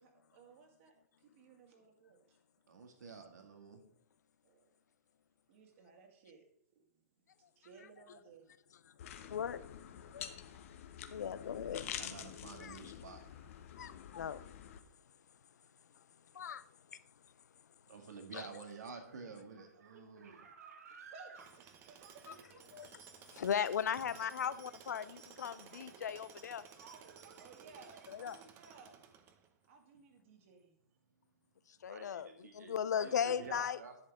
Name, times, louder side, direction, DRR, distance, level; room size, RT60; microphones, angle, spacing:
voice 1, 0.0-2.2 4.4-4.6 5.5-6.4 6.7-6.8 7.6-8.5 21.1-22.3 27.4-29.1 29.7-30.7 33.3-33.4, right 4 dB, 50° right, 2.3 m, -59 dB
voice 2, 2.7-3.8 12.0-13.8 17.9-20.5 24.2-24.3 31.8-34.0, right 5 dB, 85° right, 1.8 m, -50 dB
sound 1, 9.0-14.8, left 9 dB, 55° left, 0.9 m, -47 dB
voice 3, 11.1-11.8 12.6-12.8 13.8-14.4 16.3-16.6 18.3-18.4 22.7-22.9 23.3-26.6 28.1-28.4 31.8-33.8, left 8 dB, 80° left, 0.6 m, -37 dB
sound 2, 19.1-28.3, right 6 dB, 70° right, 1.4 m, -59 dB
Tools, 21.4-29.7, right 7 dB, 25° right, 0.8 m, -57 dB
10.5 x 6.7 x 3.6 m
hypercardioid pair, 145°, 9 cm